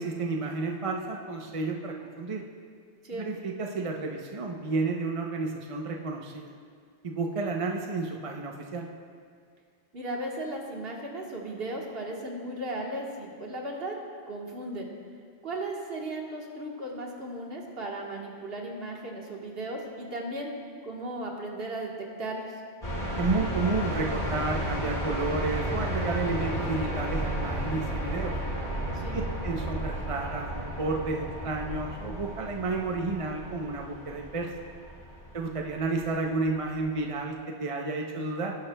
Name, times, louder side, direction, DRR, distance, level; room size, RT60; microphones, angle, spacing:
voice 1, 0.0-2.4 3.1-6.5 7.0-8.9 23.2-28.4 29.1-34.5 35.3-38.6, right 3 dB, 35° right, 1 dB, 0.7 m, -31 dB
voice 2, 9.9-14.0 14.3-14.9 15.4-20.5 20.8-22.5 28.9-29.2, right 1 dB, 60° right, -1 dB, 1.6 m, -36 dB
sound 1, 22.8-36.8, right 1 dB, 35° left, 2.3 m, -33 dB
18.0 x 10.5 x 2.2 m, 2.1 s
omnidirectional pair, 1.2 m